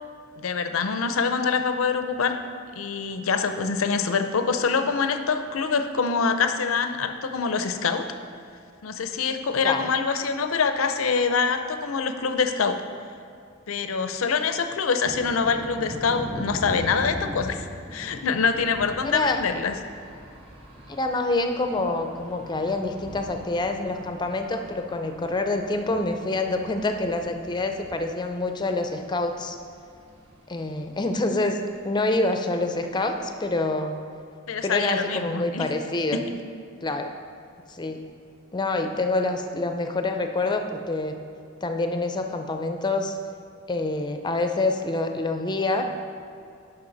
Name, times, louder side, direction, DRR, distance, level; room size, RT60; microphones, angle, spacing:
voice 1, 0.4-2.4 2.8-8.1 8.8-12.8 13.7-17.7 17.9-19.7 34.5-35.7 36.3-36.4, left 5 dB, 90° left, 8 dB, 0.6 m, -25 dB
sound 1, 15.0-33.6, equal, 25° right, 1.4 m, -42 dB
voice 2, 19.0-19.4 20.9-29.6 30.5-31.6 31.8-34.0 34.6-36.2 36.8-37.1 37.7-38.0 38.5-41.1 41.6-43.2 43.7-45.8, left 2 dB, 20° left, 5 dB, 0.5 m, -26 dB
11.5 x 5.5 x 4.0 m, 2.4 s
head